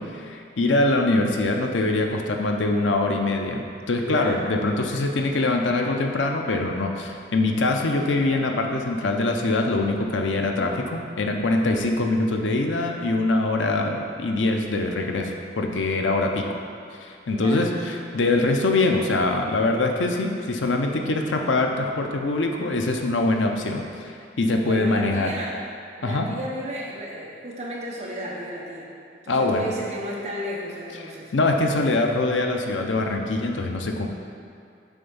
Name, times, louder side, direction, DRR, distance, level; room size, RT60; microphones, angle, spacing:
voice 1, 0.0-16.4 17.0-25.3 26.0-26.3 29.3-29.7 31.3-34.1, left 2 dB, 90° left, 3 dB, 0.6 m, -23 dB
voice 2, 4.0-4.5 17.3-18.0 24.6-25.6 26.0-28.9 29.2-31.3, equal, 35° right, -4 dB, 1.0 m, -34 dB
7.2 x 3.4 x 5.5 m, 2.4 s
head